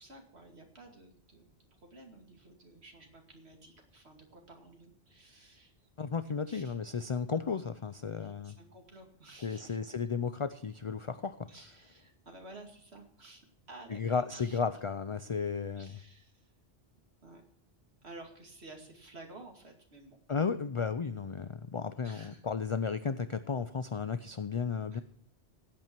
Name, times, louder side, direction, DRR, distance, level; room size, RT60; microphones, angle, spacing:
voice 1, 0.0-5.9 6.5-6.7 8.2-9.8 11.5-14.6 15.8-16.5 17.2-17.4 18.0-20.2 22.0-22.4 24.9-25.0, right 2 dB, 75° right, 2 dB, 2.7 m, -53 dB
voice 2, 6.0-8.6 9.4-11.4 13.9-15.9 20.3-25.0, left 5 dB, 40° left, 12 dB, 0.5 m, -34 dB
16.5 x 8.8 x 4.5 m, 0.62 s
omnidirectional pair, 1.1 m